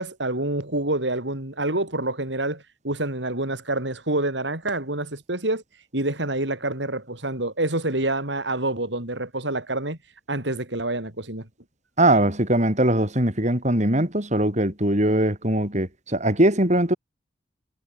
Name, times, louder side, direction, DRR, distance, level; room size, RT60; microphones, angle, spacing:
voice 1, 0.0-5.6 5.9-10.0 10.3-11.5, right 2 dB, 75° right, 5.7 m, -27 dB
voice 2, 12.0-17.0, right 1 dB, 40° right, 6.7 m, -21 dB
head